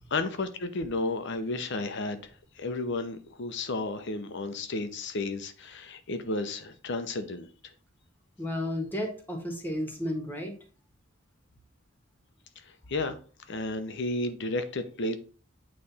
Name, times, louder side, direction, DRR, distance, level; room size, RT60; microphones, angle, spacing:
voice 1, 0.1-2.3 2.6-7.5 12.9-13.2 13.5-15.2, left 2 dB, 60° left, 0.8 m, -32 dB
voice 2, 8.4-10.5, left 1 dB, 10° left, 1.4 m, -32 dB
8.7 x 3.3 x 4.2 m
head